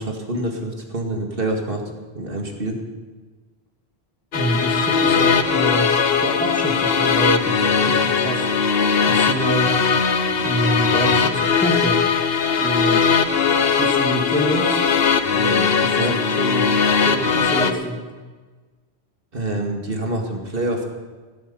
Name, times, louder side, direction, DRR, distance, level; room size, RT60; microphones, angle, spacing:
voice 1, 0.0-1.8 2.1-2.8 16.0-16.2 19.3-20.9, right 1 dB, 60° right, 2 dB, 2.4 m, -26 dB
sound 1, 4.3-17.7, left 6 dB, 70° left, 1.1 m, -19 dB
voice 2, 4.3-5.9 6.2-8.5 9.1-9.8 10.4-12.0 12.6-13.1 13.8-14.8 15.3-16.7 17.0-18.0, right 1 dB, 5° left, 1 dB, 2.2 m, -25 dB
16.0 x 13.0 x 5.5 m, 1.4 s
omnidirectional pair, 1.1 m